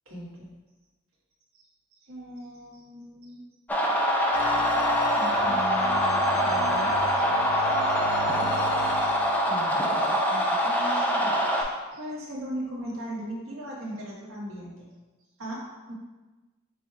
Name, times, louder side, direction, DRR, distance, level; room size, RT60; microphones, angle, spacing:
voice 1, 0.1-0.5 1.5-1.6 1.9-3.4 5.1-7.2 7.5-7.6 8.1-8.3 8.6-8.7 9.0-9.1 9.5-14.9 15.4-15.9, equal, 70° right, -5 dB, 1.2 m, -39 dB
sound 1, 3.7-11.6, equal, 10° left, 0.4 m, -24 dB
sound 2, 4.3-9.5, equal, 70° left, 0.9 m, -37 dB
4.9 x 2.3 x 4.5 m, 1.2 s
head